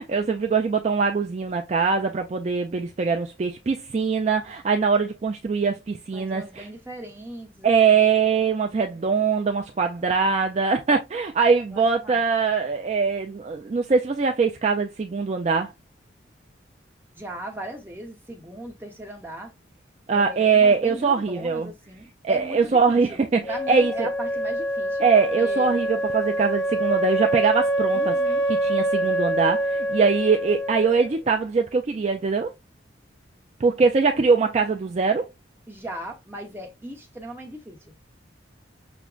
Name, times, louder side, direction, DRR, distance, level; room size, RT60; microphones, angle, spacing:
voice 1, 0.0-6.7 7.6-15.7 20.1-21.7 22.2-24.1 25.0-28.2 28.5-32.5 33.6-35.3, right 5 dB, 35° right, 0.3 m, -22 dB
voice 2, 6.1-8.0 11.7-12.2 17.1-19.5 20.1-25.0 25.3-25.8 27.9-28.4 35.7-37.8, right 1 dB, 10° right, 0.9 m, -38 dB
Wind instrument woodwind instrument, 23.4-31.2, right 1 dB, 50° left, 2.4 m, -25 dB
6.0 x 2.1 x 2.3 m
head